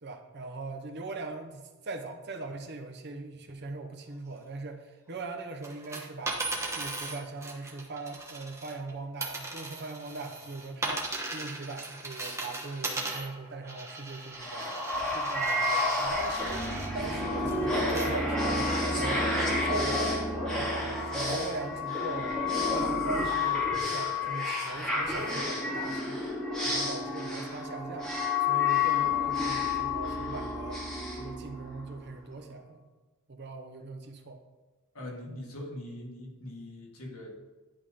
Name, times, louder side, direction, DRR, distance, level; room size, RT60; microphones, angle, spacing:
voice 1, 0.0-6.4 6.7-14.7 15.1-19.3 19.6-20.0 20.5-22.4 22.7-26.2 26.6-28.1 28.4-30.8 31.1-32.8 33.3-34.4, right 3 dB, 50° right, 5 dB, 0.9 m, -40 dB
sound 1, 5.6-8.9 9.2-16.9 17.5-18.1 18.6-18.7, right 2 dB, 15° right, 1.1 m, -38 dB
sound 2, 14.4-32.0, left 3 dB, 5° left, 1.9 m, -30 dB
voice 2, 34.9-37.5, left 1 dB, 80° left, -1 dB, 1.8 m, -42 dB
11.0 x 3.7 x 5.0 m, 1.2 s
head